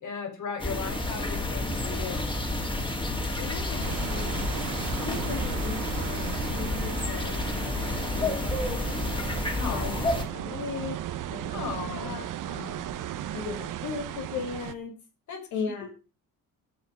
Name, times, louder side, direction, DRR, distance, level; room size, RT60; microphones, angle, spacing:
voice 1, 0.0-2.3 9.6-10.1 11.5-12.2 15.3-15.4 15.8-15.9, left 6 dB, 55° left, 4 dB, 5.4 m, -36 dB
sound 1, 0.6-10.2, left 1 dB, 15° left, 2.8 m, -30 dB
voice 2, 3.4-4.5 4.9-9.1 9.7-11.0 11.3-13.0 13.3-14.9 15.5-15.9, left 5 dB, 85° left, 1 dB, 2.9 m, -38 dB
sound 2, 3.8-14.7, right 11 dB, 65° right, 1.0 m, -36 dB
11.5 x 9.1 x 5.3 m, 0.34 s
cardioid pair, 130°, 34 cm